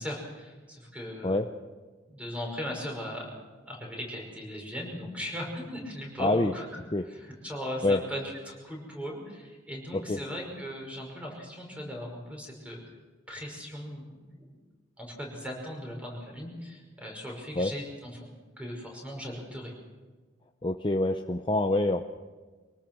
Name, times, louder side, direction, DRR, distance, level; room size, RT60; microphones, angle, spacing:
voice 1, 0.0-1.4 2.1-6.7 7.1-7.2 7.4-12.8 13.3-14.6 15.0-18.1 18.6-19.7, equal, 5° right, 0 dB, 5.6 m, -38 dB
voice 2, 6.2-6.5 6.9-7.1 7.8-8.0 9.9-10.2 17.5-17.7 20.6-22.0, left 2 dB, 25° left, 5 dB, 0.6 m, -26 dB
24.5 x 18.5 x 6.1 m, 1.3 s
head